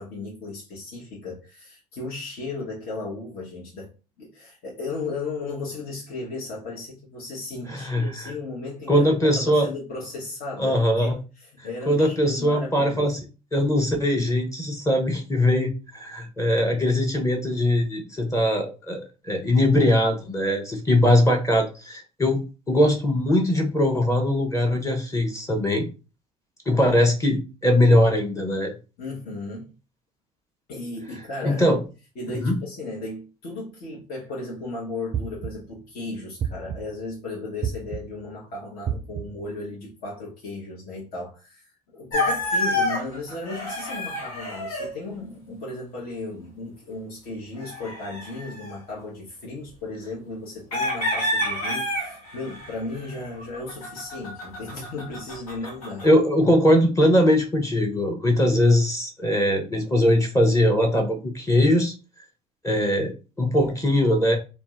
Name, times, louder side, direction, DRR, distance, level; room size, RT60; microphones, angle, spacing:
voice 1, 0.0-3.9 4.2-13.2 29.0-29.7 30.7-31.8 32.2-56.1, left 3 dB, 55° left, 0.9 m, -35 dB
voice 2, 7.7-8.3 8.9-9.7 10.6-11.2 11.9-13.2 13.5-22.4 22.7-25.9 26.7-28.7 31.4-31.8 32.3-32.6 56.0-61.9 62.6-64.4, left 1 dB, 15° left, 0.7 m, -21 dB
sound 1, 35.1-35.8 36.4-37.0 37.6-38.3 38.9-39.5, right 8 dB, 35° right, 0.4 m, -31 dB
sound 2, 42.1-44.9 47.6-48.8 50.7-56.1, left 1 dB, 85° left, 1.0 m, -28 dB
2.6 x 2.1 x 3.4 m
hypercardioid pair, 70°, 18 cm